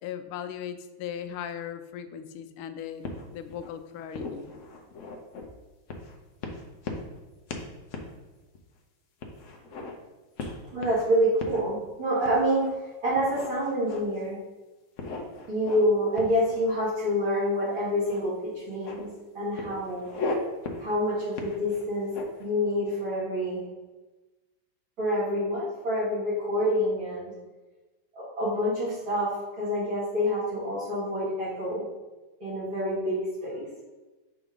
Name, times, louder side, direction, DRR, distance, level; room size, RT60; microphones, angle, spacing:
voice 1, 0.0-3.0 3.3-4.5, left 9 dB, 90° left, 10 dB, 1.4 m, -38 dB
sound 1, 3.0-3.7 4.1-5.5 5.9-6.1 6.4-7.2 7.5-7.7 7.9-8.1 8.5-8.6 9.2-9.9 10.4-11.0 11.4-11.6 12.2-12.7 13.1-14.3 15.0-17.0 18.0-18.2 18.5-19.0 19.6-20.4 20.6-20.9 21.3-22.4, left 3 dB, 65° left, 0.7 m, -37 dB
voice 2, 10.7-14.4 15.5-19.1 19.3-20.0 20.8-22.1 22.4-23.6 25.0-27.3 28.1-31.8 32.4-33.2 33.4-33.6, equal, 75° right, -10 dB, 3.2 m, -27 dB
5.9 x 3.5 x 5.3 m, 1.2 s
omnidirectional pair, 2.3 m